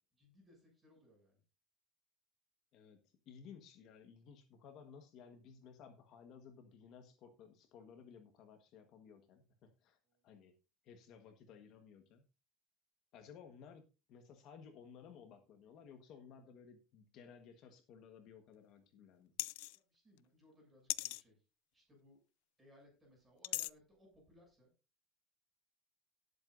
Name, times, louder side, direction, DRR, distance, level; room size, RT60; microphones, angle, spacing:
voice 1, 0.1-1.4 10.0-10.3 19.7-21.5 21.7-22.2 22.6-24.7, left 1 dB, 10° right, -1 dB, 7.2 m, -66 dB
voice 2, 2.7-10.0 10.2-10.5 10.8-12.2 13.1-13.8 14.1-19.3, left 6 dB, 45° left, 6 dB, 1.4 m, -57 dB
sound 1, 19.4-19.8 20.9-21.2 23.4-23.7, left 22 dB, 80° left, 0.5 m, -38 dB
18.5 x 8.0 x 2.6 m, 0.29 s
cardioid pair, 175°, 0 cm